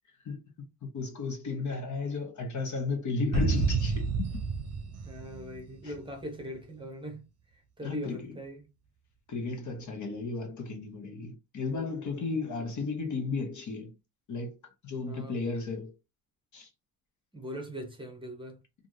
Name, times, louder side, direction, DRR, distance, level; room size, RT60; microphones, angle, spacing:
voice 1, 0.2-4.3 5.8-5.9 7.8-8.4 9.3-13.9 14.3-14.5 14.8-15.9 16.5-16.7, left 4 dB, 45° left, 1.0 m, -34 dB
sound 1, 3.3-6.1, right 4 dB, 40° right, 0.8 m, -30 dB
voice 2, 5.0-7.3 7.5-8.7 12.2-12.5 15.0-15.4 17.3-18.6, equal, 15° right, 0.9 m, -41 dB
3.2 x 2.6 x 2.7 m
cardioid pair, 115°, 39 cm